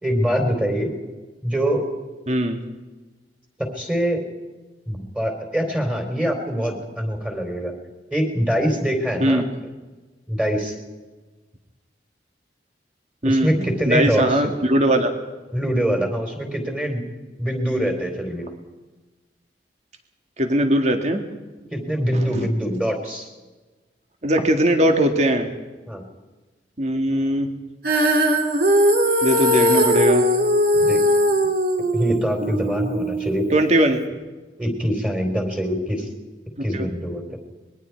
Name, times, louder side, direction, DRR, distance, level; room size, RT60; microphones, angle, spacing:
voice 1, 0.0-0.9 1.4-1.8 3.6-4.2 4.9-7.7 8.1-9.5 10.3-10.7 13.2-14.4 15.5-17.0 17.4-18.5 21.7-23.3 25.9-26.0 30.7-31.0 31.9-33.4 34.6-36.1 36.6-37.4, equal, 5° right, 2 dB, 3.7 m, -24 dB
voice 2, 2.3-2.6 9.2-9.4 13.2-15.1 20.4-21.2 22.1-22.2 24.2-25.5 26.8-27.5 29.2-30.3 33.5-34.0 36.7-36.9, right 1 dB, 40° right, 5 dB, 2.0 m, -20 dB
Female singing, 27.8-34.1, equal, 55° right, 2.5 m, -20 dB
25.5 x 21.5 x 4.7 m, 1.2 s
head